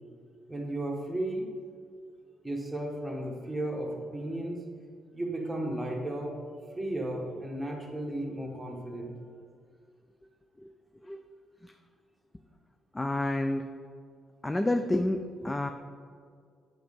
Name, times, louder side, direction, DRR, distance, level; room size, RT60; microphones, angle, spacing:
voice 1, 0.5-1.5 2.4-4.6 5.1-6.4 6.7-9.1, right 1 dB, 10° right, -1 dB, 1.4 m, -34 dB
voice 2, 12.9-13.6 14.4-15.7, left 1 dB, 15° left, 7 dB, 0.3 m, -29 dB
7.6 x 5.2 x 3.6 m, 2.1 s
cardioid pair, 90°, 0 cm